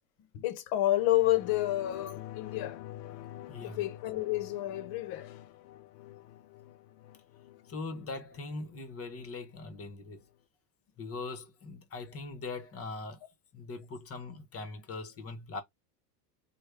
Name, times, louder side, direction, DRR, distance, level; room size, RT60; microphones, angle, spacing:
voice 1, 0.3-2.8 3.6-5.4, left 15 dB, 50° left, 0.9 m, -30 dB
sound 1, 0.9-9.9 10.3-10.4, left 13 dB, 80° left, 0.6 m, -48 dB
voice 2, 3.5-3.8 7.6-10.2 11.0-13.2 13.5-15.6, left 3 dB, 30° left, 1.0 m, -41 dB
3.3 x 2.3 x 3.3 m
hypercardioid pair, 90°, 48 cm